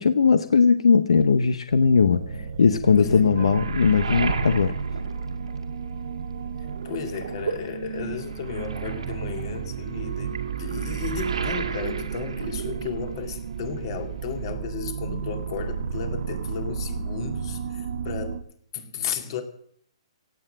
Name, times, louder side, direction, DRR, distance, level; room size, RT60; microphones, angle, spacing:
voice 1, 0.0-2.2 2.6-4.7, left 5 dB, 85° left, 11 dB, 0.8 m, -19 dB
sound 1, 1.7-18.4, right 7 dB, 70° right, 1.0 m, -32 dB
Waves surf, 2.8-6.1 6.4-13.3 13.6-14.5, right 5 dB, 90° right, 2.1 m, -35 dB
voice 2, 3.0-3.6 6.8-18.4 18.7-19.4, left 6 dB, 50° left, 6 dB, 2.3 m, -34 dB
17.0 x 7.8 x 7.7 m, 0.65 s
hypercardioid pair, 140°, 3 cm